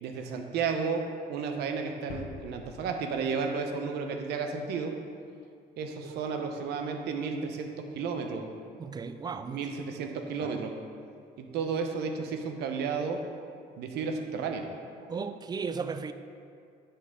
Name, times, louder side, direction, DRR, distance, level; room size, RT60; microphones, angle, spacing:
voice 1, 0.0-1.0 1.3-4.9 5.8-7.7 8.0-8.4 9.5-10.7 11.4-13.2 13.8-14.6, right 5 dB, 80° right, 4 dB, 0.9 m, -32 dB
sound 1, 2.1-4.2, left 3 dB, 60° left, 0.9 m, -46 dB
voice 2, 8.8-9.7 10.4-10.5 15.1-16.1, right 5 dB, 25° right, 10 dB, 0.4 m, -35 dB
9.8 x 5.6 x 3.8 m, 2.3 s
cardioid pair, 110°, 17 cm